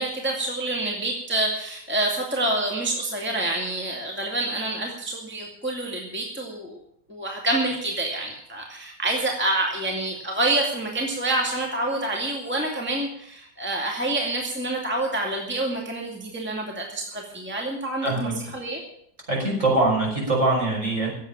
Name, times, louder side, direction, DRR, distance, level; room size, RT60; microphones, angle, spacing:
voice 1, 0.0-6.8 7.1-18.8, right 2 dB, 5° right, 0 dB, 2.3 m, -27 dB
voice 2, 18.0-18.3 19.3-21.1, right 2 dB, 40° right, -1 dB, 6.2 m, -23 dB
17.0 x 8.2 x 8.8 m, 0.70 s
omnidirectional pair, 2.0 m